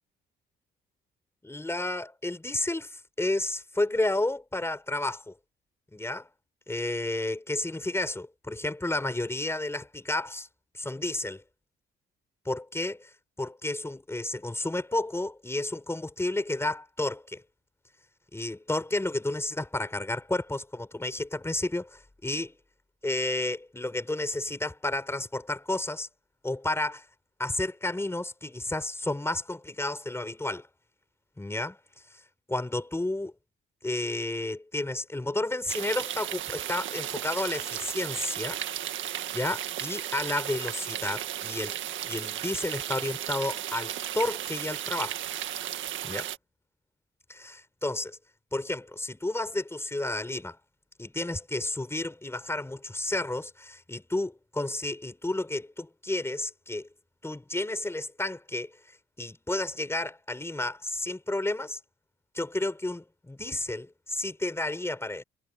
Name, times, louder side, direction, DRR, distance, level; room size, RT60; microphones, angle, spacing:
voice 1, 1.4-5.3 5.9-6.3 6.7-10.5 10.7-11.4 12.5-13.1 13.4-17.4 18.3-21.9 22.2-22.5 23.0-26.1 26.4-27.0 27.4-30.7 31.4-31.8 32.5-33.3 33.8-38.6 39.3-45.2 46.0-46.3 47.3-48.2 48.5-50.6 51.0-56.9 57.2-58.7 59.2-61.8 62.3-65.2, left 2 dB, 10° left, 7.4 m, -31 dB
sound 1, 35.7-46.4, right 11 dB, 75° right, 1.8 m, -35 dB
cardioid pair, 90°, 20 cm